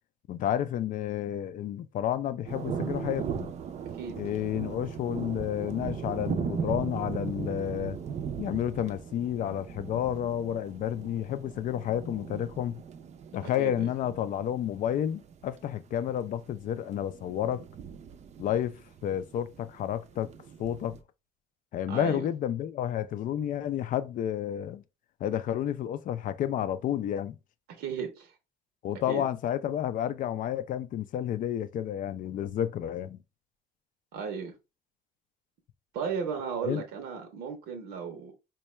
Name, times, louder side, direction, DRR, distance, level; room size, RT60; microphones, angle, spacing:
voice 1, 0.3-3.5 4.2-8.0 8.4-12.8 13.3-17.6 18.4-20.3 20.6-21.0 21.7-24.8 25.2-27.4 28.8-33.2 36.6-36.8, left 10 dB, 55° left, 0.4 m, -31 dB
sound 1, 2.5-21.0, right 7 dB, 40° right, 0.5 m, -38 dB
voice 2, 13.4-13.9 21.9-22.3 27.8-28.3 29.1-29.2 34.1-34.5 35.9-38.3, right 6 dB, 80° right, 0.7 m, -35 dB
4.4 x 2.2 x 3.0 m
cardioid pair, 110°, 17 cm